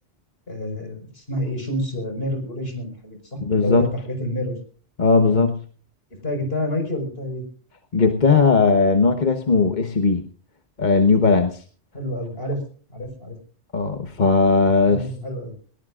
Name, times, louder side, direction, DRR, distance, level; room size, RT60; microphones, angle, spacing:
voice 1, 0.5-4.6 5.3-5.4 6.2-7.4 11.9-12.6 12.9-13.4 14.9-15.5, left 1 dB, 65° left, 4 dB, 5.5 m, -28 dB
voice 2, 3.4-3.9 5.0-5.6 7.9-10.2 10.8-11.6 13.7-15.0, left 4 dB, 45° left, 7 dB, 1.3 m, -18 dB
21.5 x 18.5 x 2.5 m, 0.42 s
omnidirectional pair, 1.1 m